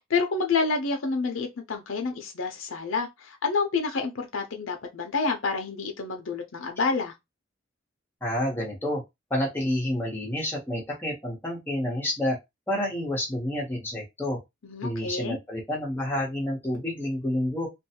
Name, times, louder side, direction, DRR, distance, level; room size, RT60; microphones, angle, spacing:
voice 1, 0.0-7.1 14.6-15.4, left 4 dB, 80° left, 0.6 m, -28 dB
voice 2, 8.2-9.0 9.3-12.4 12.7-14.4 14.8-17.7, left 1 dB, 10° left, 1.0 m, -29 dB
2.6 x 2.3 x 2.8 m
head